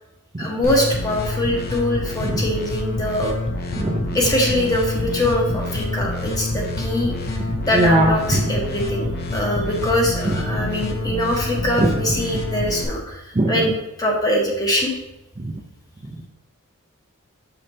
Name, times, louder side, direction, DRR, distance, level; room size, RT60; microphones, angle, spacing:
voice 1, 0.4-3.3 4.1-7.1 7.6-13.2 13.5-14.9, left 1 dB, 15° left, -2 dB, 1.3 m, -23 dB
sound 1, 0.6-12.8, left 2 dB, 45° left, 0.7 m, -27 dB
voice 2, 7.7-8.4 11.8-11.9 13.4-13.5, right 1 dB, 25° right, 0 dB, 0.5 m, -18 dB
6.7 x 5.2 x 2.8 m, 0.88 s
head